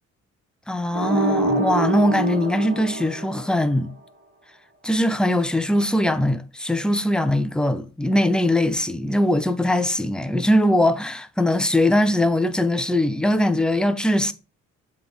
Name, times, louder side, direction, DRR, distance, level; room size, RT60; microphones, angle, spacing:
voice 1, 0.7-3.9 4.8-14.3, left 1 dB, 5° left, 0.5 m, -21 dB
sound 1, 0.9-3.9, right 2 dB, 40° right, 1.3 m, -25 dB
8.0 x 3.6 x 3.5 m
cardioid pair, 90°, 30 cm